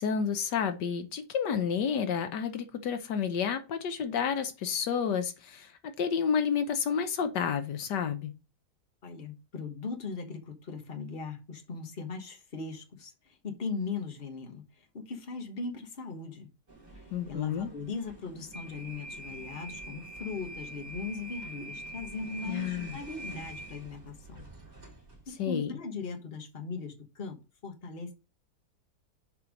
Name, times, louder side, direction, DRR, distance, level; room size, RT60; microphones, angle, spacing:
voice 1, 0.0-8.3 17.1-17.7 22.5-23.0 25.4-25.8, left 7 dB, 75° left, 1.4 m, -30 dB
voice 2, 9.0-13.1 13.4-14.6 14.9-16.5 17.3-24.4 25.3-28.1, left 4 dB, 35° left, 1.5 m, -39 dB
sound 1, 16.7-25.3, right 2 dB, 25° right, 2.9 m, -45 dB
7.2 x 4.5 x 5.1 m
omnidirectional pair, 1.8 m